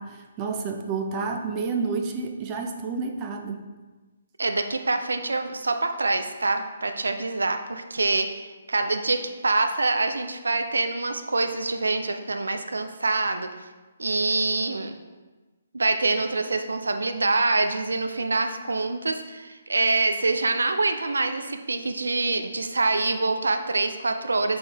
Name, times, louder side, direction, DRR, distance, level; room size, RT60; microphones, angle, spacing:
voice 1, 0.0-3.6, right 4 dB, 25° right, 4 dB, 0.6 m, -30 dB
voice 2, 4.4-13.5 14.0-14.9 15.7-24.6, right 3 dB, 80° right, 7 dB, 0.5 m, -25 dB
6.4 x 4.4 x 3.4 m, 1.2 s
figure-of-eight pair, 135°, 0 cm